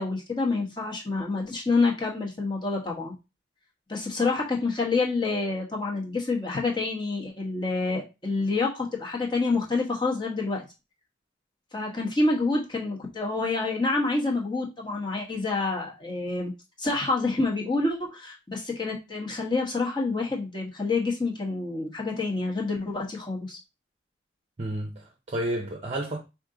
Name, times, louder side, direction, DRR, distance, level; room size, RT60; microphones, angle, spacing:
voice 1, 0.0-3.1 3.9-10.6 11.7-16.5 16.8-23.6, left 3 dB, 25° left, 1.1 m, -27 dB
voice 2, 24.6-26.2, right 1 dB, 35° right, 0.6 m, -31 dB
5.1 x 2.6 x 3.8 m
head